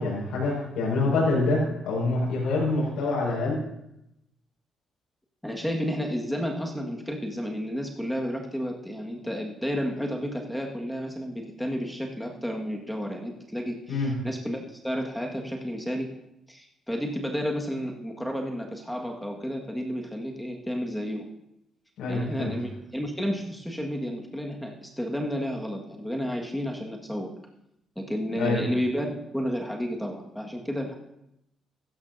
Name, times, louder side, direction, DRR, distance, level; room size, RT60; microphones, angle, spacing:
voice 1, 0.0-3.6 13.9-14.1 22.0-22.5 28.3-28.6, left 2 dB, 85° left, -5 dB, 5.4 m, -26 dB
voice 2, 5.4-16.1 16.5-21.3 22.1-27.3 27.9-29.1 29.3-31.0, equal, 5° left, 1 dB, 1.7 m, -31 dB
15.0 x 13.0 x 2.7 m, 0.82 s
cardioid pair, 90°, 0 cm